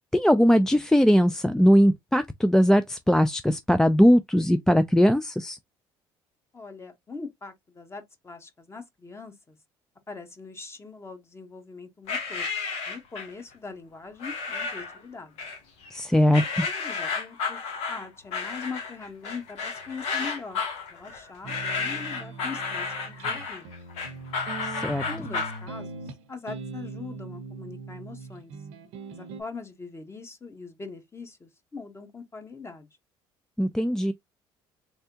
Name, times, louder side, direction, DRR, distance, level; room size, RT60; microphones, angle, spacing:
voice 1, 0.1-5.6 15.9-16.6 24.6-25.0 33.6-34.1, equal, 5° left, 0.3 m, -20 dB
voice 2, 6.5-9.6 10.1-12.5 12.9-15.3 16.6-17.6 17.9-20.6 20.9-23.7 25.1-26.0 26.3-28.5 29.1-32.9, left 4 dB, 25° left, 1.2 m, -41 dB
sound 1, 12.1-13.4 14.2-15.0 15.4-16.0 16.3-25.6, left 5 dB, 80° left, 1.4 m, -32 dB
sound 2, 21.4-29.4, right 4 dB, 80° right, 0.8 m, -40 dB
3.4 x 3.4 x 2.8 m
supercardioid pair, 80°, 10 cm